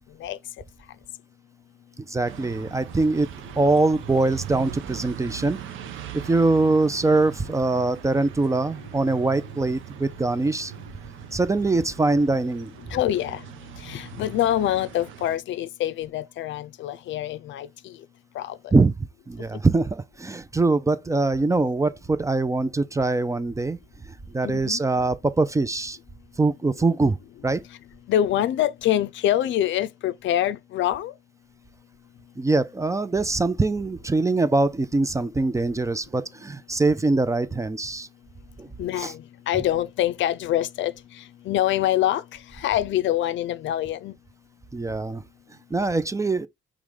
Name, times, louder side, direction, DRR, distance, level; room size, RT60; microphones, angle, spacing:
voice 1, 2.0-3.3 3.6-5.6 5.9-10.7 11.3-12.7 14.1-14.2 18.7-18.9 19.3-23.8 24.1-26.0 26.4-27.2 27.4-27.6 32.4-38.1 38.6-38.7 39.0-39.1 44.7-45.2 45.7-46.5, right 3 dB, 15° right, 0.4 m, -23 dB
sound 1, 2.2-15.4, right 11 dB, 85° right, 0.7 m, -40 dB
voice 2, 12.9-13.4 13.8-17.7 18.4-18.7 24.4-24.8 28.1-31.1 38.8-40.9 41.5-42.2 42.6-44.1, left 12 dB, 70° left, 0.5 m, -25 dB
4.8 x 3.1 x 3.5 m
cardioid pair, 90°, 20 cm